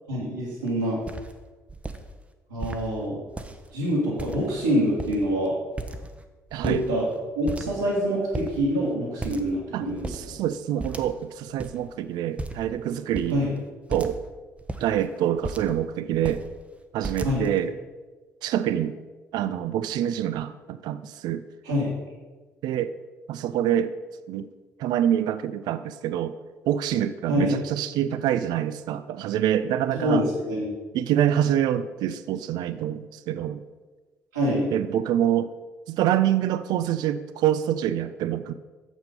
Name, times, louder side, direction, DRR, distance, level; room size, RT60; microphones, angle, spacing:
voice 1, 0.1-1.0 2.5-3.2 3.7-5.5 6.6-7.1 7.4-10.4 13.3-13.5 17.2-17.5 21.6-21.9 27.3-27.5 29.9-30.7 34.3-34.7, equal, 90° right, -11 dB, 1.9 m, -25 dB
sound 1, 0.6-0.7 1.1-1.3 1.7-2.0 2.6-2.8 3.3-3.7 4.2-4.6 4.9-5.4 5.8-6.2 6.5-7.2 7.5-8.0 8.3-8.5 9.2-9.6 9.9-10.2 10.8-11.3 11.6-11.7 12.4-12.7 13.1-13.4 13.9-14.2 14.6-15.8 16.1-16.5 17.0-17.6, right 2 dB, 15° right, 0.8 m, -35 dB
voice 2, 6.5-6.8 9.7-13.4 13.9-14.2 14.8-16.4 16.9-17.7 18.4-19.0 19.3-21.4 22.6-22.9 23.3-23.9 24.3-24.5 24.8-26.3 26.7-30.3 30.9-33.6 34.7-35.5 35.9-38.5, right 11 dB, 60° right, 13 dB, 0.4 m, -26 dB
7.4 x 6.1 x 5.3 m, 1.3 s
hypercardioid pair, 50°, 8 cm